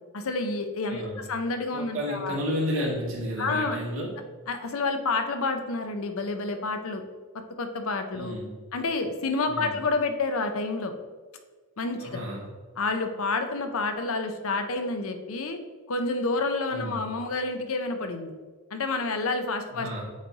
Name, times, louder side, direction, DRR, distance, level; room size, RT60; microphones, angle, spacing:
voice 1, 0.1-2.4 3.4-3.8 4.5-7.0 7.6-8.4 8.7-10.9 11.8-12.2 12.8-15.6 15.9-18.3 18.7-20.0, left 3 dB, 70° left, 7 dB, 0.7 m, -29 dB
voice 2, 0.9-1.2 1.7-4.1 8.1-8.5 9.4-9.7 12.0-12.4 16.7-17.0 19.7-20.0, equal, 60° right, -4 dB, 1.9 m, -31 dB
8.1 x 3.2 x 4.0 m, 1.4 s
head